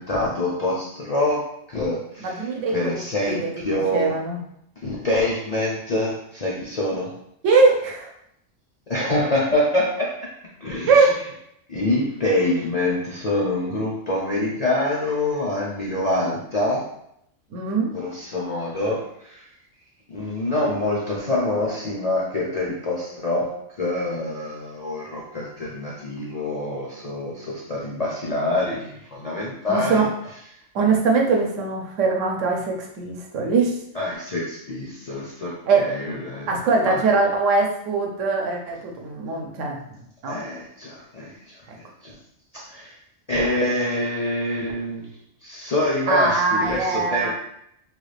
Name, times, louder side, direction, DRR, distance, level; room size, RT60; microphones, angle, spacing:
voice 1, 0.0-1.4 1.7-2.4 2.7-4.1 4.8-7.1 8.9-10.1 10.6-11.1 11.7-16.8 17.9-19.4 20.1-23.5 23.8-30.1 33.9-36.5 36.8-37.0 40.3-42.1 42.5-42.9 43.3-45.1 45.4-47.3, left 1 dB, 50° left, -4 dB, 0.4 m, -25 dB
voice 2, 2.2-3.0 3.3-4.4 7.4-8.1 10.9-11.2 17.5-17.9 29.7-30.1 30.7-33.7 35.7-35.9 36.5-39.8 40.2-40.4 46.1-47.3, right 4 dB, 75° right, 1 dB, 1.0 m, -21 dB
3.4 x 2.3 x 3.2 m, 0.74 s
omnidirectional pair, 1.3 m